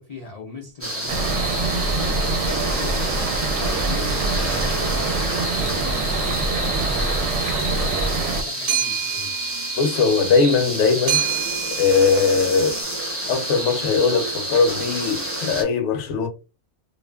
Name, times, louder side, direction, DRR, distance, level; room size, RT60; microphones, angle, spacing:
voice 1, 0.0-9.3, left 4 dB, 85° left, 0.3 m, -39 dB
sound 1, 0.8-15.6, right 1 dB, 15° right, 0.5 m, -29 dB
sound 2, 1.1-8.4, right 3 dB, 65° right, 0.9 m, -24 dB
sound 3, 6.3-6.7 7.0-12.8, right 10 dB, 85° right, 0.4 m, -30 dB
voice 2, 9.8-11.2 11.8-12.8 13.3-16.3, left 5 dB, 70° left, 0.8 m, -20 dB
2.4 x 2.4 x 2.2 m
omnidirectional pair, 1.4 m